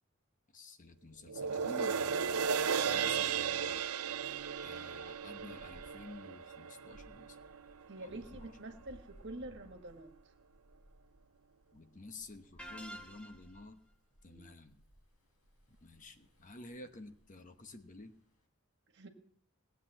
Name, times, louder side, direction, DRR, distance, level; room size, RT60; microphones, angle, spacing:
voice 1, 0.5-3.8 4.6-7.4 8.0-8.5 11.7-13.8 14.2-14.8 15.7-18.1, left 2 dB, 35° left, 7 dB, 1.1 m, -51 dB
sound 1, 1.3-7.8 8.3-8.4, right 6 dB, 90° right, 0.6 m, -35 dB
sound 2, 3.7-18.5, equal, 80° left, 4.6 m, -63 dB
voice 2, 7.9-10.1 14.3-14.5 18.9-19.1, right 2 dB, 55° right, 5 dB, 1.7 m, -47 dB
sound 3, 12.6-13.6, right 1 dB, 5° left, 1.1 m, -48 dB
19.0 x 8.2 x 7.7 m, 0.64 s
head